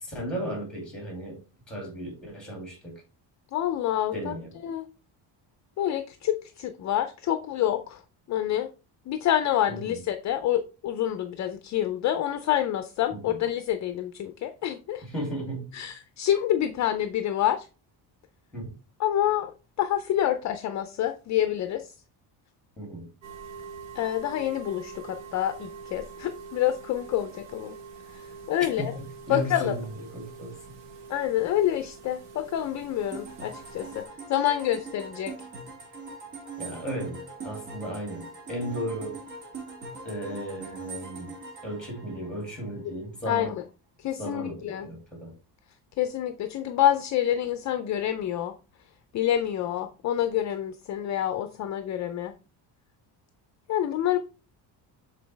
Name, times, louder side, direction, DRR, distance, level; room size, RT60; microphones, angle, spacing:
voice 1, 0.0-1.4 1.7-3.0 4.1-4.5 9.7-10.0 13.1-13.4 15.0-15.7 18.5-18.7 22.8-23.1 28.8-30.6 36.6-39.2 40.0-41.3 41.6-43.5 44.2-45.3, right 1 dB, ahead, 2.6 m, -35 dB
voice 2, 3.5-4.3 4.6-4.8 5.8-8.0 8.3-8.7 9.1-15.0 15.7-17.7 19.0-19.5 19.8-21.9 24.0-27.7 28.5-28.9 29.3-29.7 31.1-34.0 34.3-35.3 43.3-43.6 44.0-44.9 46.0-48.5 49.1-52.3 53.7-54.2, left 11 dB, 45° left, 0.5 m, -27 dB
sound 1, 23.2-34.1, right 5 dB, 75° right, 1.4 m, -45 dB
sound 2, 33.1-42.8, right 3 dB, 45° right, 1.9 m, -42 dB
7.4 x 3.9 x 3.3 m
cardioid pair, 170°, 43 cm